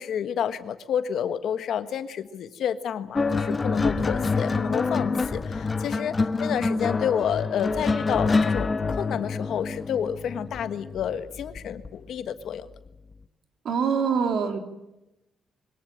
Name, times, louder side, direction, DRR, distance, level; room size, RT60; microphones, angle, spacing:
voice 1, 0.0-12.7, left 8 dB, 70° left, 10 dB, 1.5 m, -30 dB
sound 1, 3.2-11.9 12.9-13.1, left 4 dB, 25° left, 1.2 m, -26 dB
voice 2, 13.7-14.6, right 6 dB, 65° right, 6 dB, 3.6 m, -24 dB
23.5 x 18.0 x 8.9 m, 0.94 s
cardioid pair, 110°, 0 cm